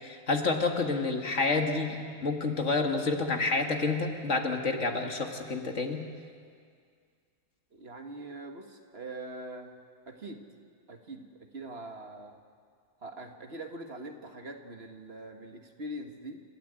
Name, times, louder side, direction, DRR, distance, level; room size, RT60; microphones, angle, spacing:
voice 1, 0.0-6.0, left 3 dB, 60° left, 3 dB, 2.1 m, -29 dB
voice 2, 7.7-9.7 10.1-10.4 10.9-12.4 13.0-16.4, right 1 dB, 45° right, 4 dB, 1.9 m, -43 dB
29.5 x 13.5 x 9.0 m, 2.1 s
omnidirectional pair, 1.4 m